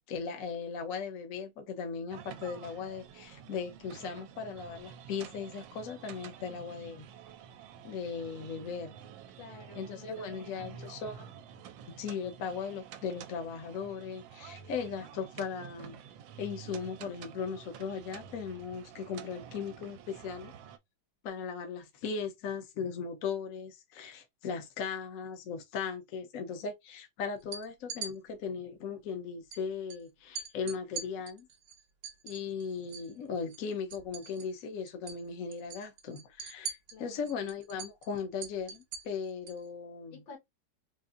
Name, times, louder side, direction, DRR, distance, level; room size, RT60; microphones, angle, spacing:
voice 1, 0.0-7.1 7.8-9.0 9.7-11.3 11.9-16.0 16.4-20.5 21.2-31.5 32.2-40.2, left 6 dB, 60° left, 1.0 m, -38 dB
sound 1, 2.1-20.8, right 8 dB, 85° right, 1.3 m, -49 dB
voice 2, 9.4-10.1 10.4-10.8 36.9-37.4 40.1-40.4, left 5 dB, 90° left, 2.1 m, -52 dB
sound 2, 27.4-28.1 29.5-29.6 29.9-30.0 30.4-33.1 33.4-34.6 34.9-35.2 35.5-39.6, right 6 dB, 60° right, 1.2 m, -42 dB
4.1 x 2.6 x 2.4 m
omnidirectional pair, 2.0 m